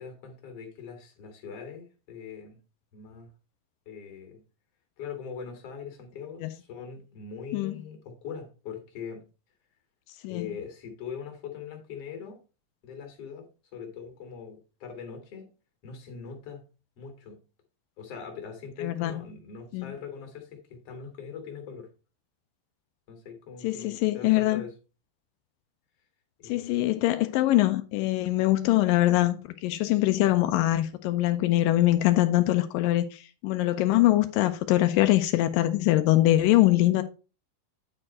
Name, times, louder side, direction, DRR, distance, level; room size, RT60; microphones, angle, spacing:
voice 1, 0.0-2.6 2.9-3.3 3.9-4.4 5.0-9.2 10.3-12.4 12.8-13.5 13.7-15.5 15.8-16.7 17.0-17.4 18.0-21.9 23.1-24.7 26.4-26.8, left 6 dB, 50° left, 2.7 m, -41 dB
voice 2, 18.8-19.1 19.7-19.9 23.6-24.6 26.5-37.0, left 15 dB, 85° left, 2.3 m, -23 dB
10.0 x 4.5 x 4.2 m
omnidirectional pair, 3.9 m